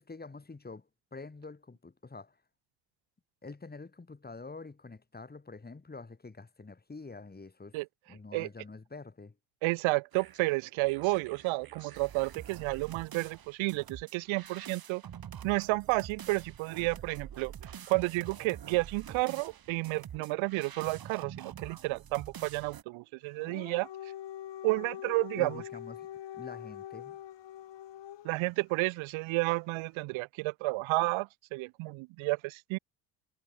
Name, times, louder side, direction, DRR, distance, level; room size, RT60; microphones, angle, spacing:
voice 1, 0.0-2.4 3.4-7.8 8.1-9.3 25.4-26.1 26.4-27.2, left 3 dB, 20° left, 5.7 m, -47 dB
voice 2, 9.6-15.0 15.4-17.5 17.9-23.9 24.6-25.6 28.2-32.8, right 23 dB, 70° right, 0.8 m, -31 dB
sound 1, 10.1-22.8, right 9 dB, 45° right, 3.7 m, -47 dB
Dog, 23.3-28.5, left 12 dB, 55° left, 5.4 m, -44 dB
supercardioid pair, 85°, 50 cm